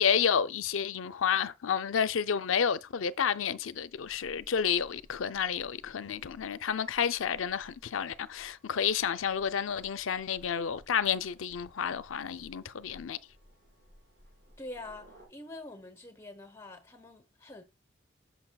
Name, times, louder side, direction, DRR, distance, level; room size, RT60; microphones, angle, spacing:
voice 1, 0.0-13.2, left 7 dB, 90° left, 0.5 m, -30 dB
sound 1, 3.9-15.3, equal, 65° right, 4.4 m, -58 dB
voice 2, 14.6-17.6, left 2 dB, 15° left, 1.0 m, -45 dB
8.8 x 6.5 x 2.3 m
head